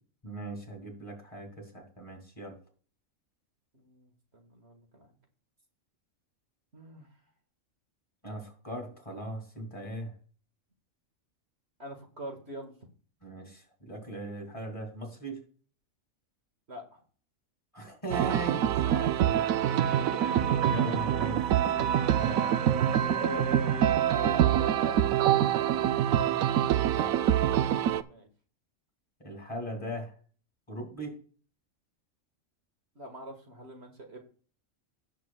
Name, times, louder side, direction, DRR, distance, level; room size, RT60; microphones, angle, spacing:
voice 1, 0.2-2.6 8.2-10.1 13.2-15.4 17.7-19.6 20.6-21.4 21.9-22.5 26.9-27.6 29.2-30.1 30.7-31.2, right 1 dB, 25° left, 2 dB, 2.6 m, -39 dB
voice 2, 3.7-5.1 6.7-7.1 11.8-12.7 16.7-17.0 18.9-19.8 20.1-20.7 21.6-22.2 22.6-22.7 23.1-26.0 28.0-28.3 33.0-34.2, right 2 dB, 50° right, 3 dB, 2.0 m, -42 dB
sound 1, 18.1-28.0, right 10 dB, 80° right, 1.0 m, -25 dB
18.0 x 7.1 x 2.3 m, 0.42 s
omnidirectional pair, 1.4 m